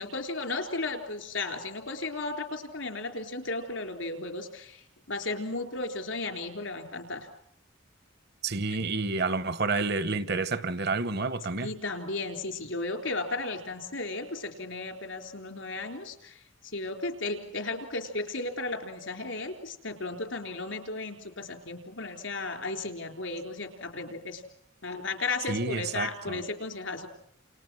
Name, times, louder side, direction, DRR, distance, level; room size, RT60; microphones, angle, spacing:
voice 1, 0.0-7.3 8.7-8.8 11.6-16.4 16.6-24.4 24.8-27.1, left 3 dB, 80° left, 3.9 m, -35 dB
voice 2, 8.4-11.7 25.5-26.4, right 3 dB, 55° right, 1.0 m, -29 dB
29.5 x 29.0 x 6.3 m
head